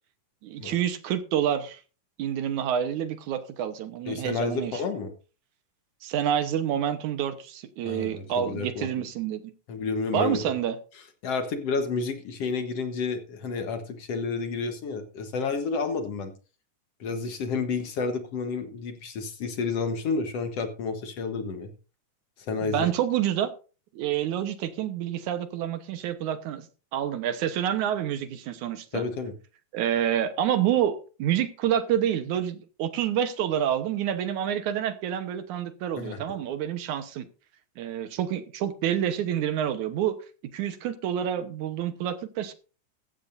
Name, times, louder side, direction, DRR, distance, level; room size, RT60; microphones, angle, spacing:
voice 1, 0.4-1.8 2.2-4.8 6.0-9.5 10.1-10.8 22.6-23.5 23.9-29.0 29.7-37.3 37.8-40.2 40.5-42.5, right 10 dB, 75° right, 2.4 m, -28 dB
voice 2, 4.1-5.1 7.8-8.9 9.7-10.4 11.2-16.3 17.0-21.7 22.4-22.9 28.9-29.3 36.0-36.2, left 4 dB, 60° left, 2.0 m, -30 dB
15.0 x 14.0 x 2.6 m
omnidirectional pair, 3.6 m